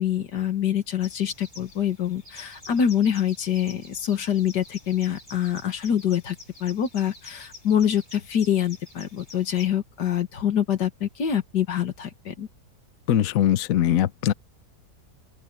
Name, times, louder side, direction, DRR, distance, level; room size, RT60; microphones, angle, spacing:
voice 1, 0.0-12.5, left 9 dB, 80° left, 2.2 m, -25 dB
sound 1, 1.0-9.7, left 3 dB, 25° left, 7.5 m, -47 dB
voice 2, 13.1-14.3, left 11 dB, 60° left, 1.1 m, -21 dB
open air
omnidirectional pair, 1.8 m